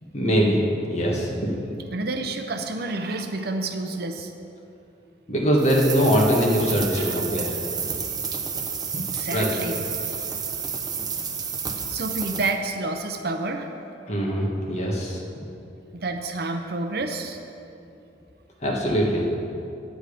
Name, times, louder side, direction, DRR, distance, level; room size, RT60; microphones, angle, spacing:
voice 1, 0.1-0.6 0.9-1.5 5.3-7.5 9.3-9.5 14.1-15.2 18.6-19.3, equal, 35° left, -2 dB, 1.6 m, -22 dB
voice 2, 1.9-4.3 6.9-7.2 8.9-10.3 11.9-13.7 15.9-17.4, right 2 dB, 55° right, 6 dB, 0.7 m, -29 dB
sound 1, 5.6-12.5, right 6 dB, 20° right, 0.6 m, -30 dB
9.1 x 8.8 x 5.0 m, 2.7 s
head